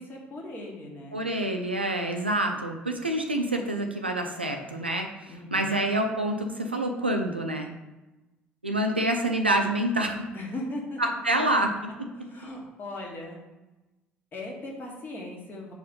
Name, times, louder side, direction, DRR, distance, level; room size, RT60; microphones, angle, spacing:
voice 1, 0.0-1.2 5.3-5.8 10.3-11.0 12.2-13.4 14.3-15.7, left 1 dB, 35° left, -1 dB, 1.6 m, -38 dB
voice 2, 1.1-7.7 8.6-10.3 11.0-12.1, right 1 dB, 90° right, 3 dB, 0.5 m, -27 dB
4.7 x 4.1 x 5.3 m, 1.1 s
figure-of-eight pair, 50°, 6 cm